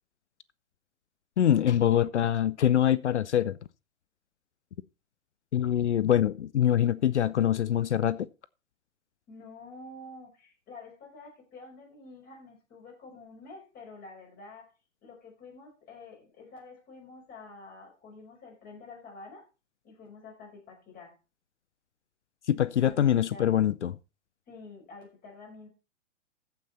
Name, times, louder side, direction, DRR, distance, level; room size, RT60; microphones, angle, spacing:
voice 1, 1.4-3.6 5.5-8.3 22.5-23.9, left 10 dB, 65° left, 0.6 m, -24 dB
voice 2, 9.3-14.7 15.0-19.5 19.8-21.2 22.8-23.5 24.5-25.7, left 3 dB, 25° left, 5.4 m, -48 dB
14.5 x 6.0 x 4.1 m
figure-of-eight pair, 115°, 37 cm